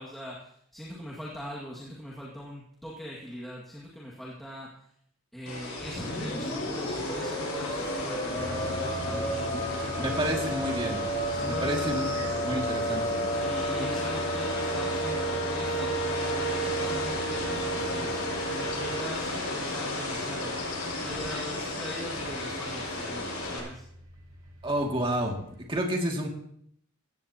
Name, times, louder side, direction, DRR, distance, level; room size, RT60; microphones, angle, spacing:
voice 1, 0.0-4.7 5.3-10.9 11.3-12.4 12.7-12.8 13.3-18.2 18.5-20.6 21.0-23.8, equal, ahead, -6 dB, 2.0 m, -41 dB
sound 1, 5.5-23.6, left 2 dB, 90° left, 6.5 m, -34 dB
sound 2, 5.8-19.0, right 2 dB, 20° left, 4.4 m, -33 dB
sound 3, 8.4-25.7, equal, 80° right, 6.5 m, -43 dB
voice 2, 10.0-11.0 11.4-12.1 12.4-13.3 13.8-13.9 24.6-25.4 25.7-26.3, right 1 dB, 25° right, 0 dB, 2.3 m, -30 dB
16.5 x 16.0 x 2.9 m, 0.68 s
head